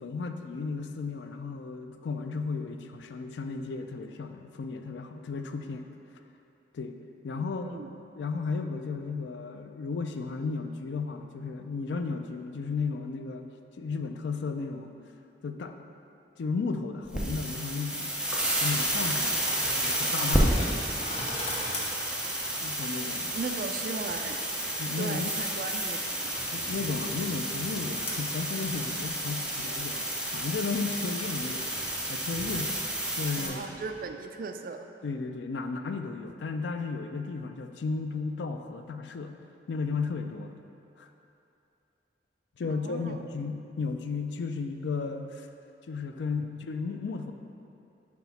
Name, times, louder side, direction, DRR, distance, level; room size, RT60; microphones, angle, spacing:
voice 1, 0.0-5.9 6.7-7.0 7.2-7.8 8.1-14.9 15.4-15.8 16.4-18.1 18.6-20.8 22.6-23.4 24.8-25.4 26.5-32.8 33.2-33.6 35.0-39.4 39.7-40.6 41.0-41.1 42.6-45.5 45.9-47.3, left 4 dB, 75° left, 6 dB, 0.4 m, -34 dB
voice 2, 7.3-7.9 23.3-24.4 25.0-26.4 33.4-34.9 42.6-43.2, right 4 dB, 50° right, 6 dB, 0.3 m, -37 dB
sound 1, 17.1-33.5, right 1 dB, 5° right, 0.7 m, -31 dB
sound 2, 18.3-34.0, left 1 dB, 35° left, 1.0 m, -44 dB
6.0 x 4.8 x 4.1 m, 2.7 s
head